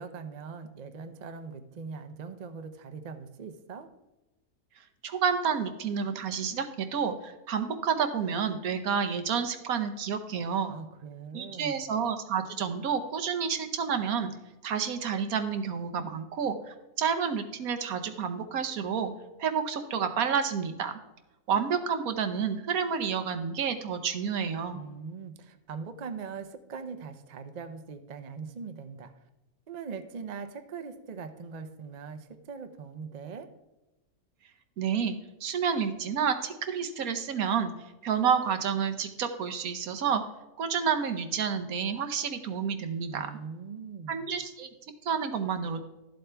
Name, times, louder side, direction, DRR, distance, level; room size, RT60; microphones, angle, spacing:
voice 1, 0.0-3.9 10.7-11.8 24.7-29.1 29.7-33.5 43.1-44.3, right 5 dB, 45° right, 8 dB, 0.5 m, -41 dB
voice 2, 5.0-10.7 11.3-14.3 14.6-19.1 19.4-20.9 21.5-24.8 34.8-35.2 35.4-37.7 38.0-40.2 40.6-43.3 44.1-44.7 45.0-45.8, right 7 dB, 70° right, 8 dB, 1.3 m, -29 dB
12.0 x 7.7 x 3.4 m, 1.0 s
omnidirectional pair, 1.6 m